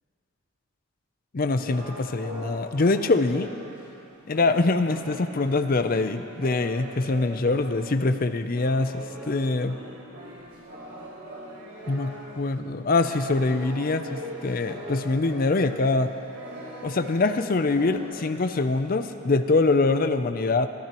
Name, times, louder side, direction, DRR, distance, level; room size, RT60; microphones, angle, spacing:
voice 1, 1.3-3.5 4.3-9.8 11.9-16.1 16.8-20.7, left 3 dB, 40° left, 9 dB, 0.5 m, -24 dB
sound 1, 1.5-12.5 12.9-19.7, equal, 75° right, 3.8 m, -41 dB
24.0 x 14.0 x 3.0 m, 2.8 s
head